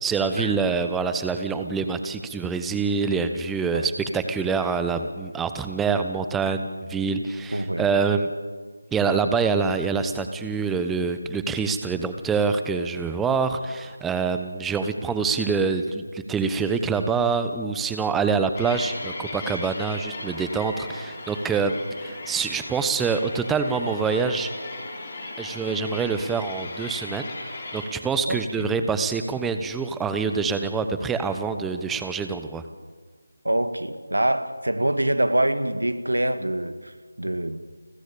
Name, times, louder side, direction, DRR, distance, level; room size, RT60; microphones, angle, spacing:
voice 1, 0.0-8.3 8.9-24.5 25.4-27.3 27.7-32.6, right 5 dB, 5° right, 8 dB, 0.9 m, -25 dB
voice 2, 7.5-7.9 28.3-28.7 33.4-37.6, right 1 dB, 85° right, 10 dB, 1.9 m, -25 dB
sound 1, 18.5-27.9, left 2 dB, 30° left, 7.1 m, -37 dB
29.5 x 14.5 x 8.7 m, 1.5 s
figure-of-eight pair, 165°, 0 cm